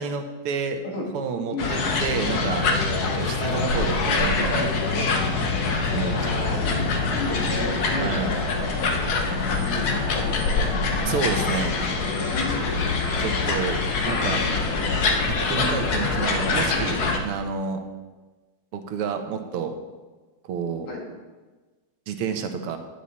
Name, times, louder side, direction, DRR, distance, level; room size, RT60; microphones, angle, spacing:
voice 1, 0.0-0.8 1.1-2.7 3.0-5.1 5.9-6.5 8.0-8.3 11.1-11.8 13.2-13.8 14.1-14.4 15.3-17.8 18.7-19.7 20.5-20.9 22.1-22.8, right 6 dB, 90° right, 6 dB, 1.8 m, -29 dB
sound 1, 1.6-17.2, left 3 dB, 55° left, 1.3 m, -24 dB
voice 2, 6.1-6.8 7.1-8.9 9.3-10.7 12.3-12.7 20.9-21.0, left 2 dB, 85° left, -2 dB, 3.2 m, -33 dB
9.9 x 9.0 x 4.1 m, 1.3 s
omnidirectional pair, 2.4 m